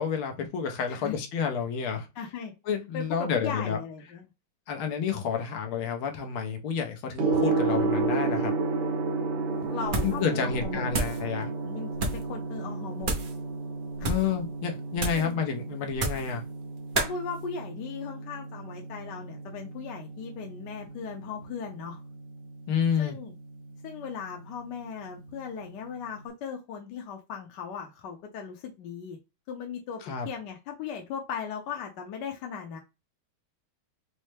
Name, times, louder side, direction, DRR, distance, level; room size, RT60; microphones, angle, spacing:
voice 1, 0.0-2.1 2.7-3.8 4.7-8.5 10.0-11.5 14.0-16.4 22.7-23.2 30.1-30.3, left 7 dB, 90° left, 1.7 m, -29 dB
voice 2, 2.2-2.5 2.9-4.3 9.7-10.9 11.6-13.1 14.0-14.1 15.1-15.4 16.9-22.0 23.0-23.3 23.8-29.2 29.5-32.8, left 6 dB, 65° left, 1.2 m, -38 dB
Gong, 7.2-26.2, right 3 dB, 65° right, 1.3 m, -33 dB
sound 1, 9.9-10.3 10.5-11.2 11.9-12.3 13.0-13.4 13.9-14.3 15.0-15.3 15.9-16.3 16.9-17.2, right 2 dB, 80° right, 0.4 m, -30 dB
5.5 x 2.1 x 3.2 m
omnidirectional pair, 2.3 m